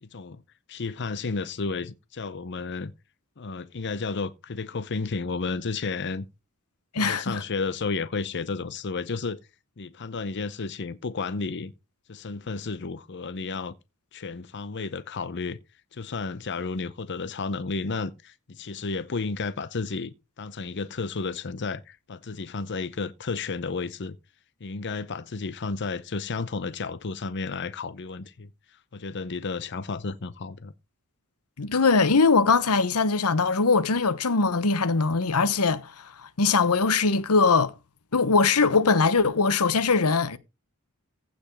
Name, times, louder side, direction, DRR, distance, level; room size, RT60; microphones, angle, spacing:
voice 1, 0.0-0.4 0.7-2.9 3.4-6.3 7.0-9.4 9.8-11.7 12.1-13.7 14.1-15.6 15.9-24.2 24.6-28.5 28.9-30.7, left 4 dB, 55° left, 0.7 m, -32 dB
voice 2, 6.9-7.4 31.6-35.9 36.2-37.7 38.1-40.4, left 4 dB, 85° left, 1.0 m, -21 dB
15.5 x 5.2 x 5.3 m
head